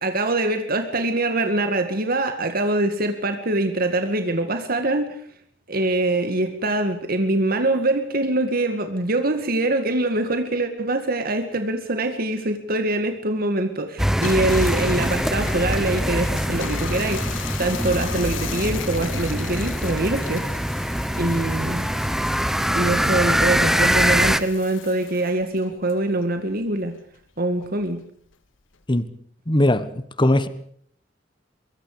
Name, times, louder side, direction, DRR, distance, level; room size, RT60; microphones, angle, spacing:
voice 1, 0.0-5.2 5.7-20.5 21.1-21.9 22.7-26.9 27.4-28.0, right 2 dB, 50° right, 2.1 m, -24 dB
Bathtub (filling or washing), 14.0-26.8 27.1-29.0, left 9 dB, 90° left, 1.5 m, -38 dB
sound 1, 14.0-24.4, equal, ahead, 1.1 m, -23 dB
voice 2, 29.5-29.9 30.2-30.5, left 1 dB, 25° left, 1.5 m, -18 dB
24.5 x 23.0 x 5.1 m
head